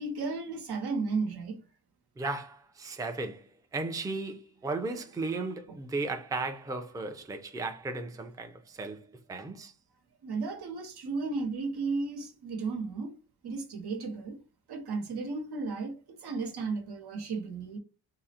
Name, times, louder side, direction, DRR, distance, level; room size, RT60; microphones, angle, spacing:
voice 1, 0.0-1.6 5.2-5.8 10.2-13.1 13.4-14.4 14.7-17.8, right 4 dB, 85° right, 1.0 m, -34 dB
voice 2, 2.2-3.4 3.7-9.0 9.3-9.7, right 3 dB, 10° right, 0.4 m, -35 dB
3.7 x 2.0 x 4.2 m
wide cardioid pair, 135°, 38 cm